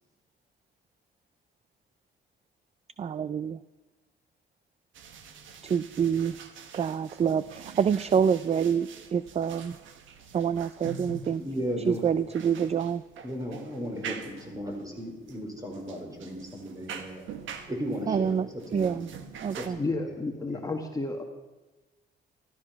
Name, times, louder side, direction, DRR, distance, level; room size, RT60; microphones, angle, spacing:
voice 1, 3.0-3.6 5.6-6.4 6.7-9.8 10.3-11.4 11.9-13.0 18.1-19.1 19.4-19.8, right 7 dB, 30° right, 16 dB, 0.4 m, -27 dB
sound 1, 4.9-19.7, right 6 dB, 75° right, 1.4 m, -45 dB
voice 2, 11.3-12.1 13.2-17.3 17.7-19.0 19.6-19.9 20.5-20.6, equal, 15° right, 2 dB, 4.3 m, -35 dB
voice 3, 19.8-21.2, left 3 dB, 20° left, 3 dB, 1.6 m, -31 dB
14.0 x 13.0 x 5.8 m, 1.1 s
cardioid pair, 90°, 20 cm